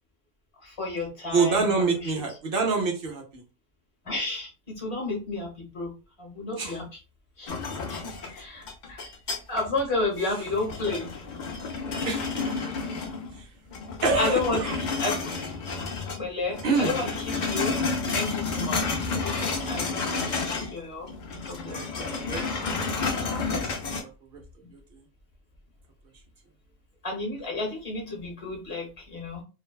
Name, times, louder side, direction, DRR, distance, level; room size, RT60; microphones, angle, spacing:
voice 1, 0.6-2.1 4.0-5.9 6.2-7.0 7.4-7.5 7.9-9.0 9.5-11.1 14.2-15.1 16.2-17.7 18.1-21.1 21.5-22.1 27.0-29.4, left 3 dB, 25° left, -1 dB, 1.0 m, -32 dB
voice 2, 1.3-3.4 6.6-6.8 12.0-12.9 13.4-13.5 14.0-14.8 16.6-17.0 21.7-23.2 23.5-24.0 24.3-24.4, right 4 dB, 60° right, 2 dB, 0.6 m, -27 dB
sound 1, 7.5-9.8 10.2-13.4 13.7-16.2 16.5-20.8 21.0-24.0, left 4 dB, 60° left, 0.5 m, -30 dB
2.5 x 2.1 x 2.3 m, 0.31 s
omnidirectional pair, 1.4 m